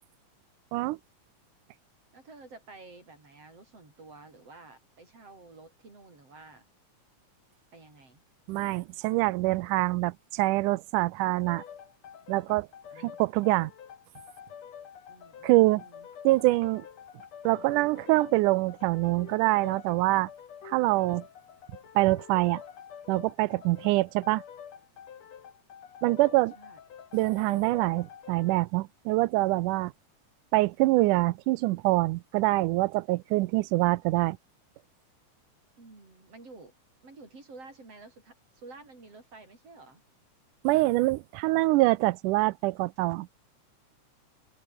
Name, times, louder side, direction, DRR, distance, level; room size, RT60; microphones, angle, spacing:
voice 1, 2.1-6.7 7.7-8.2 12.9-13.5 15.1-16.1 26.5-26.8 35.8-36.7 37.0-40.0, right 3 dB, 50° right, 7.9 m, -51 dB
voice 2, 8.5-11.6 12.3-12.7 13.0-13.7 15.4-15.8 16.2-16.8 17.4-20.3 20.6-21.2 22.0-22.6 23.1-24.4 26.0-26.5 27.1-29.9 30.5-34.4 40.6-43.3, right 19 dB, 85° right, 2.2 m, -25 dB
sound 1, 11.3-28.7, left 8 dB, 60° left, 3.2 m, -48 dB
open air
omnidirectional pair, 3.6 m